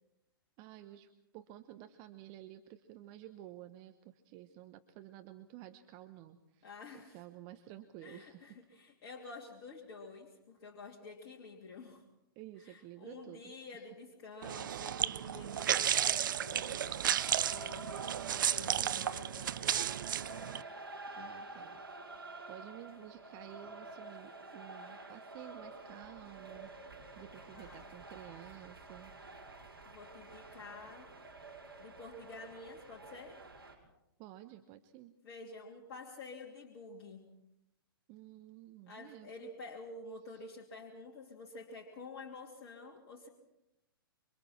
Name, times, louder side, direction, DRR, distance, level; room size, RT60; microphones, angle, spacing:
voice 1, 0.6-8.5 12.3-13.9 18.6-19.2 21.2-21.8 22.5-26.7 27.1-29.1 34.2-35.2 38.1-39.5 40.3-40.4, right 13 dB, 35° right, 8 dB, 1.1 m, -52 dB
voice 2, 6.6-7.2 8.0-12.0 12.6-19.6 27.5-27.8 29.8-31.1 31.8-33.4 35.2-37.3 38.9-43.3, left 3 dB, 40° left, -1 dB, 3.0 m, -50 dB
sound 1, 14.4-20.6, right 10 dB, 55° right, 0.7 m, -33 dB
sound 2, 16.0-33.7, right 2 dB, 75° right, 6.5 m, -49 dB
27.0 x 24.5 x 4.5 m, 0.87 s
figure-of-eight pair, 110°, 13 cm